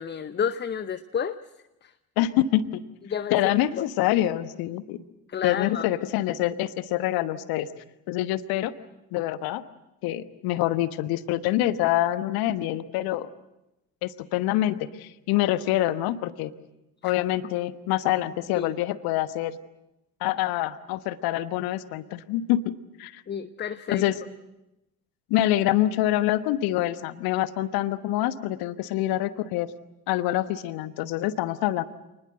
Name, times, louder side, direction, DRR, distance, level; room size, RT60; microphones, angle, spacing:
voice 1, 0.0-1.4 1.8-1.9 3.1-3.8 5.3-5.9 17.0-17.1 18.6-18.7 23.3-24.0, left 8 dB, 25° left, 12 dB, 0.8 m, -30 dB
voice 2, 2.2-2.8 3.3-5.0 5.4-7.7 8.1-8.7 9.1-9.6 10.0-13.3 14.0-16.5 17.0-19.6 20.2-22.7 23.0-23.2 23.9-24.2 25.3-29.7 30.1-31.8, left 14 dB, 55° left, 14 dB, 1.2 m, -26 dB
27.0 x 20.5 x 7.8 m, 0.93 s
figure-of-eight pair, 55°, 44 cm